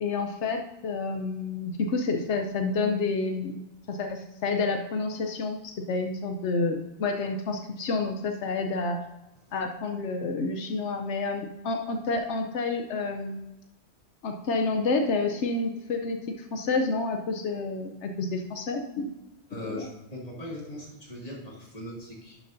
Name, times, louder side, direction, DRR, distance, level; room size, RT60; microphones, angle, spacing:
voice 1, 0.0-3.6 3.9-9.0 9.5-13.5 14.2-19.1 19.6-19.9, left 3 dB, 85° left, 4 dB, 1.1 m, -29 dB
voice 2, 19.5-22.4, equal, 35° left, -3 dB, 2.5 m, -40 dB
11.0 x 7.5 x 2.6 m, 1.0 s
omnidirectional pair, 1.1 m